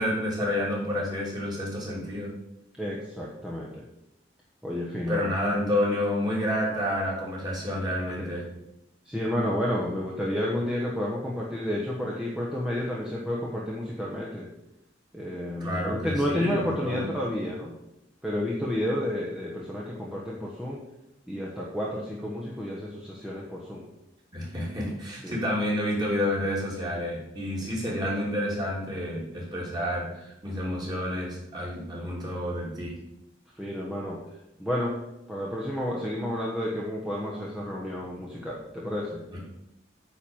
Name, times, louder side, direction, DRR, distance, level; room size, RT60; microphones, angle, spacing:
voice 1, 0.0-2.3 5.1-8.4 15.6-17.0 24.3-33.0 39.3-39.5, left 1 dB, 20° right, -4 dB, 3.0 m, -29 dB
voice 2, 2.8-3.8 4.6-5.2 8.2-8.3 9.0-14.5 15.1-17.7 18.2-20.8 21.3-23.8 25.2-25.4 27.6-27.7 33.6-34.2 34.6-35.0 35.3-39.2, left 1 dB, 5° right, -5 dB, 1.2 m, -31 dB
9.4 x 4.6 x 7.2 m, 0.88 s
head